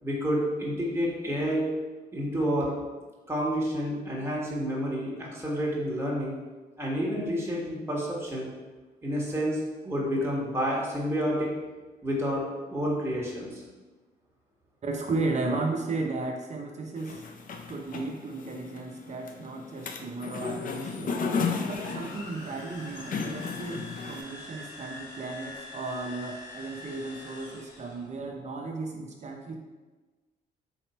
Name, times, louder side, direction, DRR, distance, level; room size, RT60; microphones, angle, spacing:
voice 1, 0.0-1.7 2.1-2.7 3.3-6.4 6.8-8.5 9.0-11.5 12.0-13.6, equal, 15° right, -4 dB, 1.4 m, -29 dB
voice 2, 14.8-17.2 17.7-21.2 21.6-29.6, right 3 dB, 40° right, 1 dB, 0.6 m, -34 dB
sound 1, 17.0-24.2, left 5 dB, 55° left, 0.5 m, -34 dB
sound 2, 21.7-28.0, left 2 dB, 75° left, 1.1 m, -44 dB
4.0 x 3.0 x 4.3 m, 1.2 s
cardioid pair, 75°, 17 cm